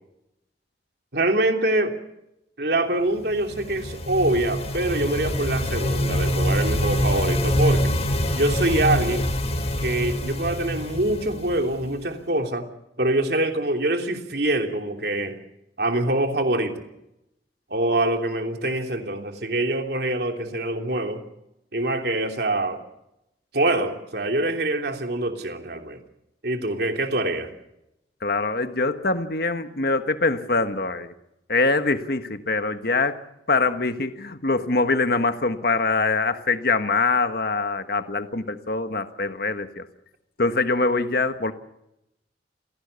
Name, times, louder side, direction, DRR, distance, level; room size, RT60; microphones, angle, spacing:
voice 1, 1.1-2.0 2.6-7.9 8.3-9.3 9.8-12.7 13.0-15.4 15.8-16.8 17.7-21.2 21.7-22.8 23.5-26.0 26.4-27.5, right 1 dB, 60° right, 4 dB, 3.1 m, -24 dB
sound 1, 3.3-12.0, equal, 35° left, 1.9 m, -25 dB
voice 2, 28.2-31.1 31.5-33.2 33.5-39.8 40.4-41.5, left 3 dB, 55° left, 9 dB, 1.5 m, -23 dB
28.0 x 17.0 x 7.0 m, 0.86 s
head